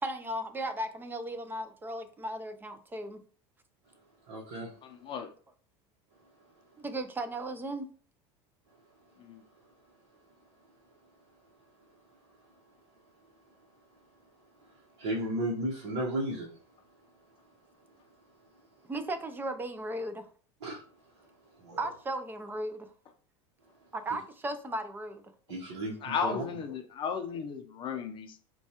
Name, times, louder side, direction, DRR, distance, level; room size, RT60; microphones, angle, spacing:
voice 1, 0.0-3.2 6.8-7.9 18.9-20.3 21.8-22.9 23.9-25.2, right 1 dB, 15° right, 0.4 m, -36 dB
voice 2, 4.3-4.7 14.7-16.5 17.8-17.9 20.6-20.8 21.6-21.8 25.5-26.4, right 1 dB, 70° right, 1.0 m, -34 dB
voice 3, 4.8-5.3 9.2-9.4 26.0-28.4, left 6 dB, 35° left, 0.5 m, -35 dB
4.3 x 2.3 x 2.8 m
supercardioid pair, 115°, 15 cm